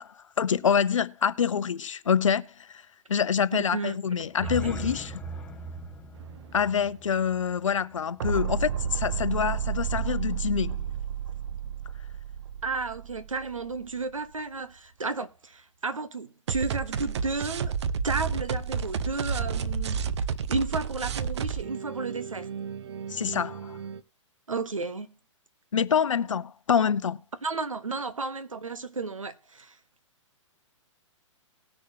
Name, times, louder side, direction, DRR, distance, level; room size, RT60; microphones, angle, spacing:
voice 1, 0.0-2.8 3.1-5.2 6.5-10.9 23.1-23.8 25.7-27.2, left 7 dB, 75° left, 0.6 m, -26 dB
voice 2, 3.5-4.0 12.6-17.7 18.0-20.0 20.5-22.5 24.5-25.1 27.4-29.8, right 3 dB, 85° right, 1.1 m, -32 dB
sound 1, 4.2-8.3, right 3 dB, 5° left, 1.5 m, -39 dB
Anthony Baldino Reel Sharing Project, 6.2-6.5 8.2-14.0 16.5-24.0, right 7 dB, 60° right, 0.8 m, -31 dB
19.0 x 6.5 x 2.8 m
figure-of-eight pair, 120°, 16 cm